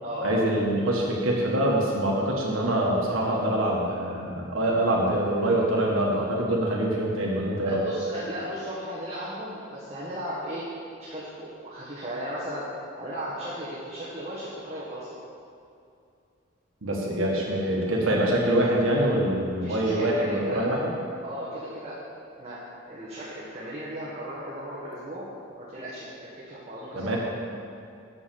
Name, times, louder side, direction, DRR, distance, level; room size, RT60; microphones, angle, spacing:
voice 1, 0.2-7.8 16.8-20.8 26.9-27.2, right 1 dB, 80° right, -2 dB, 1.5 m, -25 dB
voice 2, 7.6-10.7 11.0-12.7 13.0-15.1 19.6-20.7 21.2-22.0 22.4-22.6 22.9-25.3 25.6-27.2, equal, 30° right, -8 dB, 1.5 m, -36 dB
8.3 x 6.2 x 7.0 m, 2.5 s
head